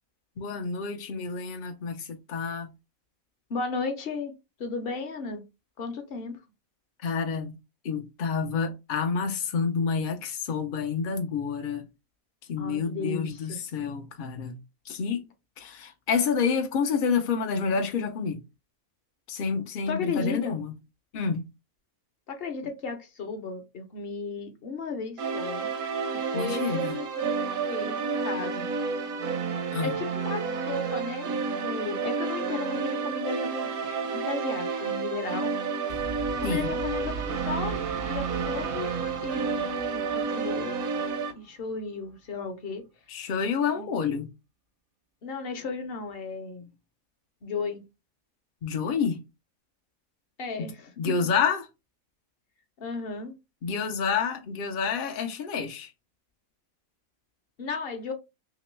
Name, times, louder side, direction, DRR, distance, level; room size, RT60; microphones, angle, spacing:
voice 1, 0.4-2.7 7.0-7.6 7.8-11.8 12.5-14.6 14.9-15.2 15.6-18.4 19.3-20.7 21.1-21.5 26.3-26.9 29.7-29.9 36.4-36.7 43.1-44.3 48.6-49.2 50.6-50.7 51.0-51.7 53.6-55.9, left 5 dB, 70° left, 0.5 m, -28 dB
voice 2, 3.5-5.4 5.8-6.4 12.6-13.6 19.9-20.6 22.3-25.7 26.1-28.7 29.8-31.3 31.6-35.5 36.4-39.0 39.2-41.0 41.3-42.9 43.2-43.3 43.7-43.9 45.2-46.7 47.4-47.8 50.4-51.2 52.8-53.4 57.6-58.1, left 4 dB, 50° left, 0.8 m, -35 dB
sound 1, 25.2-41.3, right 5 dB, 85° right, 1.1 m, -30 dB
sound 2, 35.9-41.5, right 7 dB, 55° right, 0.6 m, -38 dB
3.0 x 2.9 x 3.1 m
omnidirectional pair, 1.5 m